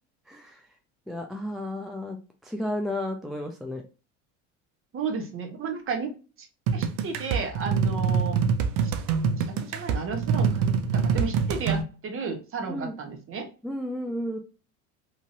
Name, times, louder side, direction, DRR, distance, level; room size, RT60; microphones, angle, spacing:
voice 1, 0.3-0.6 1.1-2.2 2.4-3.8 12.7-13.0 13.6-14.4, left 1 dB, ahead, 3 dB, 0.3 m, -32 dB
voice 2, 4.9-6.1 6.7-8.4 9.5-13.5, right 5 dB, 35° right, 4 dB, 0.9 m, -33 dB
sound 1, 6.7-11.8, right 6 dB, 60° right, 0.6 m, -25 dB
3.0 x 2.6 x 2.6 m, 0.33 s
supercardioid pair, 85°, 36 cm